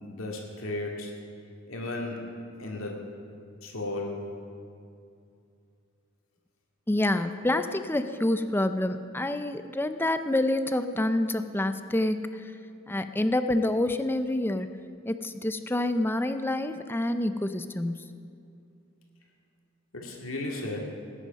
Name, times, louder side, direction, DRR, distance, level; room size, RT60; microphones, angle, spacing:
voice 1, 0.0-1.1 1.7-2.2 2.6-3.1 3.6-4.2 19.9-20.9, left 2 dB, 75° left, 0 dB, 2.3 m, -34 dB
voice 2, 6.9-12.4 12.9-14.7 15.0-18.0, left 1 dB, 10° left, 9 dB, 0.5 m, -27 dB
19.5 x 9.9 x 5.3 m, 2.5 s
head